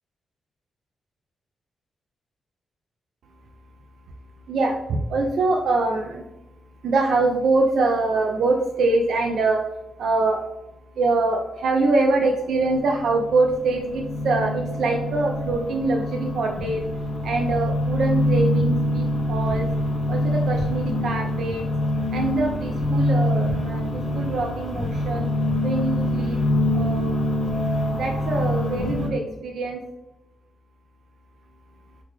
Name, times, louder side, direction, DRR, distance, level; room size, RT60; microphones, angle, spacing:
voice 1, 4.5-6.2 6.8-9.7 10.0-10.4 11.0-16.9 17.2-19.7 20.1-21.7 22.1-25.3 25.6-26.4 26.7-27.1 27.9-29.8, right 3 dB, 75° right, 2 dB, 0.3 m, -24 dB
sound 1, 12.6-29.1, left 1 dB, 60° left, 1.0 m, -25 dB
3.7 x 2.2 x 3.0 m, 0.95 s
cardioid pair, 100°, 0 cm